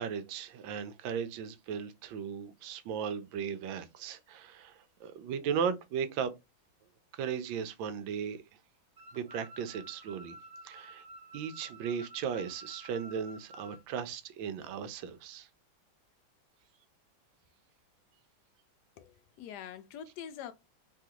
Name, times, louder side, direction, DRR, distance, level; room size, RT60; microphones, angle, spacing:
voice 1, 0.0-6.4 7.1-8.4 9.1-10.4 10.6-11.0 11.3-15.5, right 7 dB, 80° right, 1.3 m, -36 dB
sound 1, 9.0-13.8, right 2 dB, 35° right, 1.0 m, -51 dB
voice 2, 19.0-20.5, left 9 dB, 75° left, 0.9 m, -44 dB
3.3 x 2.4 x 2.8 m
omnidirectional pair, 2.2 m